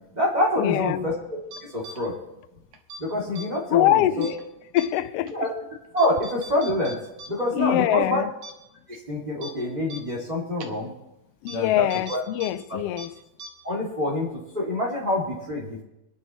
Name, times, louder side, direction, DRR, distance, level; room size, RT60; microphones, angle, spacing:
voice 1, 0.0-2.1 3.0-4.3 5.3-5.5 5.9-7.0 7.3-8.2 8.9-10.9 11.5-12.2 12.7-12.8 13.6-15.8, left 1 dB, 15° right, 2.2 m, -26 dB
voice 2, 0.6-1.0 3.7-4.3 4.7-5.3 7.5-8.3 11.4-13.1, left 13 dB, 85° left, 1.4 m, -23 dB
sound 1, 1.5-2.0 2.7-3.0 3.4-3.5 4.2-4.4 4.8-4.9 5.3-5.4 6.0-7.3 7.6-7.7 8.1-8.2 8.4-8.5 8.9-9.0 9.4-9.5 9.9-10.0 10.6-10.7 11.5-11.6 11.9-12.5 12.8-13.1 13.4-13.5, right 2 dB, 75° right, 2.6 m, -40 dB
27.0 x 10.0 x 3.1 m
omnidirectional pair, 3.4 m